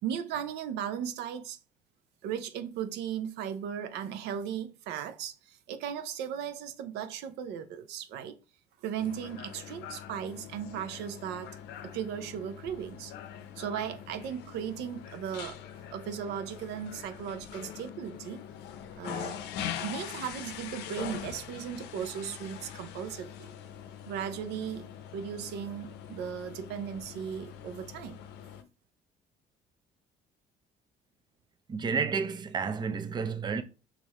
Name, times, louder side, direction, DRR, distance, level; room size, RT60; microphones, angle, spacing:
voice 1, 0.0-1.6 2.2-8.4 8.8-11.5 11.8-13.1 13.6-15.6 15.9-18.4 19.0-19.4 19.8-23.5 24.1-24.9 25.1-28.2, right 8 dB, 85° right, 0.6 m, -37 dB
sound 1, 9.0-28.6, left 9 dB, 90° left, 0.6 m, -43 dB
voice 2, 31.7-33.6, right 5 dB, 25° right, 0.5 m, -31 dB
4.7 x 2.6 x 4.1 m
cardioid pair, 110°, 17 cm